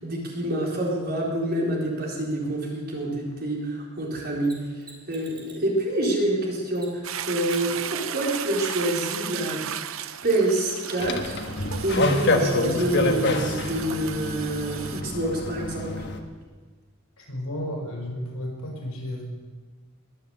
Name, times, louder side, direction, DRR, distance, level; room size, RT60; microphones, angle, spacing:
voice 1, 0.0-9.6 10.2-11.5 11.8-16.0, right 1 dB, 45° right, -2 dB, 4.2 m, -27 dB
Mechanisms, 4.4-5.7 6.7-7.1 7.5-7.7 10.4-10.5, right 3 dB, 20° right, 3.7 m, -47 dB
Toilet flush, 7.0-15.0, right 9 dB, 70° right, 0.7 m, -35 dB
sound 1, 11.0-16.2, left 2 dB, 55° left, 1.4 m, -27 dB
voice 2, 17.2-19.2, equal, 75° left, 0 dB, 5.5 m, -33 dB
22.0 x 7.9 x 8.1 m, 1.4 s
head